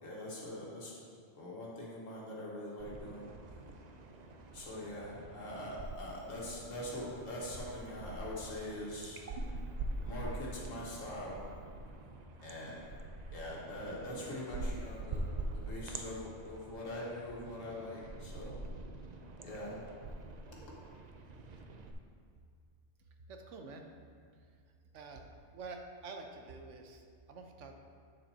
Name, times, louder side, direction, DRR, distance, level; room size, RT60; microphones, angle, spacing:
voice 1, 0.0-0.9 1.3-3.3 4.5-9.2 10.0-11.4 12.4-12.9 13.3-18.6 19.4-19.8 20.5-20.6, left 1 dB, 90° left, -5 dB, 1.8 m, -43 dB
sound 1, 2.8-6.0 6.2-21.9, right 2 dB, 55° right, 0.4 m, -44 dB
voice 2, 23.3-23.8 24.9-25.2 25.5-27.7, right 3 dB, 75° right, 4 dB, 1.0 m, -47 dB
8.3 x 7.1 x 2.8 m, 2.2 s
omnidirectional pair, 1.3 m